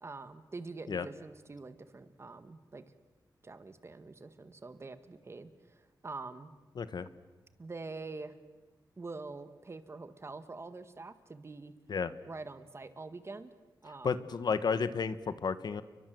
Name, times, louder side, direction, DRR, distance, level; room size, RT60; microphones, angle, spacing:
voice 1, 0.0-2.8 3.4-6.5 7.6-8.4 9.0-11.7 12.3-13.5 13.8-14.3, right 3 dB, 35° right, 11 dB, 1.8 m, -45 dB
voice 2, 6.8-7.1 11.9-12.1 14.0-15.8, left 5 dB, 65° left, 14 dB, 1.3 m, -32 dB
30.0 x 23.0 x 7.7 m, 1.2 s
wide cardioid pair, 115°, 8 cm